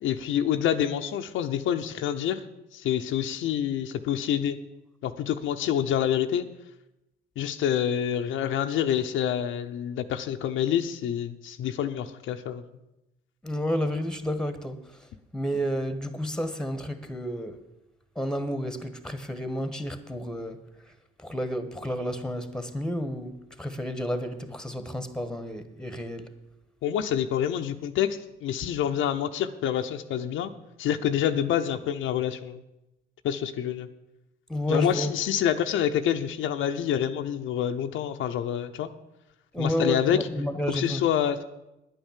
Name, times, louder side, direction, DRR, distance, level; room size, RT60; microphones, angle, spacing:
voice 1, 0.0-2.4 2.7-4.6 5.0-6.4 7.4-12.6 26.8-30.5 30.8-32.6 33.2-33.9 34.7-38.9 39.6-40.2 40.7-41.4, left 9 dB, 80° left, 0.8 m, -27 dB
voice 2, 13.4-15.0 15.3-17.6 18.1-20.6 21.2-26.3 34.5-35.1 39.5-41.0, equal, 5° left, 1.4 m, -31 dB
10.0 x 9.0 x 7.4 m
cardioid pair, 90°, 20 cm